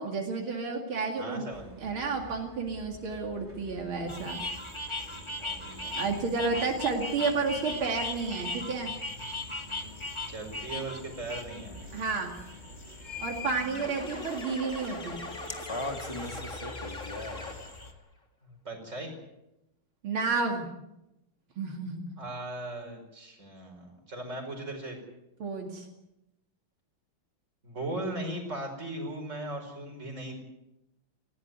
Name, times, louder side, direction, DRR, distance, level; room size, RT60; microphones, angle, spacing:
voice 1, 0.0-1.5 1.8-4.4 5.9-8.9 11.9-12.3 13.2-15.2 20.0-20.7 21.6-22.0 25.4-25.9, right 4 dB, 80° right, 2 dB, 3.1 m, -31 dB
voice 2, 1.2-1.9 5.4-6.2 10.3-11.8 13.4-13.9 18.4-19.2 22.2-25.0 27.6-30.4, right 1 dB, 35° right, 3 dB, 5.5 m, -38 dB
sound 1, 1.5-14.3, left 3 dB, 20° right, 3.5 m, -47 dB
sound 2, 4.1-17.9, left 2 dB, 15° left, 1.8 m, -39 dB
sound 3, 13.7-17.9, left 2 dB, 35° left, 3.4 m, -41 dB
19.5 x 16.5 x 9.5 m, 0.89 s
omnidirectional pair, 2.2 m